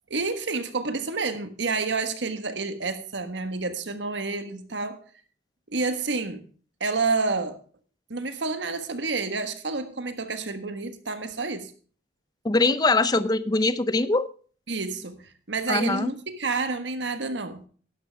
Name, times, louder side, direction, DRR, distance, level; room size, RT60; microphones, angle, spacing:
voice 1, 0.1-5.0 5.7-6.4 6.8-7.6 8.1-11.7 14.7-17.6, right 3 dB, 80° right, 1.5 m, -29 dB
voice 2, 12.4-14.3 15.7-16.1, left 3 dB, 20° left, 0.6 m, -22 dB
12.0 x 11.0 x 3.5 m
head